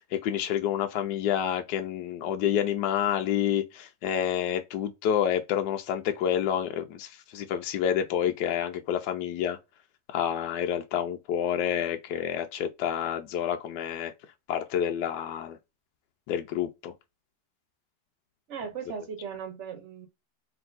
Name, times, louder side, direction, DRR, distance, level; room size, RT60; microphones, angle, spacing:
voice 1, 0.0-9.6 10.1-14.1 14.5-15.6 16.3-16.9, left 9 dB, 80° left, 1.2 m, -28 dB
voice 2, 18.5-20.1, right 7 dB, 50° right, 1.1 m, -37 dB
3.4 x 2.7 x 3.9 m
omnidirectional pair, 1.8 m